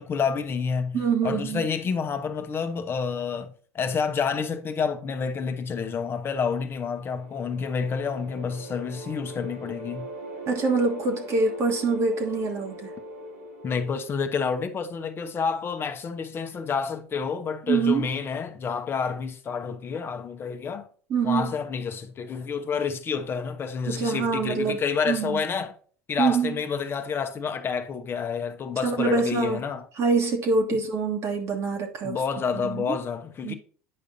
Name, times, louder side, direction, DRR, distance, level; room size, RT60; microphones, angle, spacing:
voice 1, 0.0-10.1 13.6-20.9 21.2-25.7 26.1-29.8 32.0-33.5, left 6 dB, 30° left, 1.0 m, -29 dB
voice 2, 0.9-1.7 10.5-12.9 17.7-18.1 21.1-21.5 23.9-24.8 25.1-25.4 26.2-26.5 28.8-29.6 30.0-32.2 32.5-33.0 33.4-33.5, right 4 dB, 40° right, 1.5 m, -25 dB
sound 1, 6.5-15.5, right 1 dB, 80° right, 2.8 m, -42 dB
9.7 x 5.0 x 2.7 m
hypercardioid pair, 80°, 7 cm